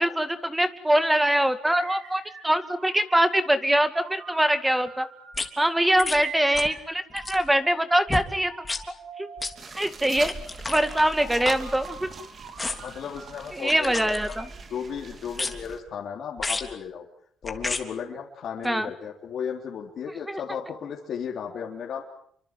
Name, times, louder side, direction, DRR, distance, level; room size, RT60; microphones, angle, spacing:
voice 1, 0.0-5.1 5.6-8.5 9.2-9.3 9.7-10.3 10.7-12.1 13.6-14.5 18.6-18.9 20.3-20.4, right 1 dB, 10° right, 10 dB, 2.2 m, -23 dB
sound 1, 1.7-3.3 3.9-5.5 6.2-7.8 8.4-9.6 10.7-13.5 13.9-15.7, right 6 dB, 75° right, 6.6 m, -45 dB
sound 2, 5.3-5.5 6.0-6.2 6.5-6.8 7.1-7.5 8.1-8.3 8.6-8.8 9.4-9.5 10.2-12.1 12.6-13.0 13.7-14.6 15.3-15.8 16.4-16.7 17.4-17.8 18.6-18.7, left 3 dB, 20° left, 3.4 m, -33 dB
sound 3, 9.6-15.8, right 4 dB, 45° right, 3.4 m, -43 dB
voice 2, 12.8-14.1 14.7-17.1 17.4-22.0, left 7 dB, 65° left, -1 dB, 3.8 m, -35 dB
28.5 x 24.5 x 7.8 m, 0.66 s
cardioid pair, 90°, 0 cm